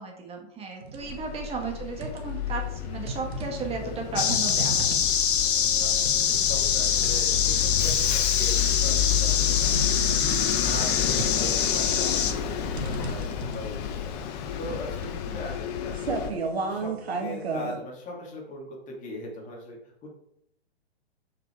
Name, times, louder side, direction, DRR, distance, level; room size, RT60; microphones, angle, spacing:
voice 1, 0.0-5.1 15.3-15.5, right 5 dB, 20° right, 2 dB, 1.6 m, -35 dB
sound 1, 0.8-1.2 1.6-2.5 3.1-17.8, right 4 dB, 75° right, 1.9 m, -35 dB
Bus, 1.0-16.3, left 9 dB, 40° left, 1.0 m, -31 dB
sound 2, 4.2-12.3, left 8 dB, 55° left, 1.4 m, -24 dB
voice 2, 6.3-20.1, left 1 dB, 25° left, -1 dB, 2.8 m, -40 dB
7.2 x 6.1 x 4.7 m, 0.74 s
hypercardioid pair, 130°, 32 cm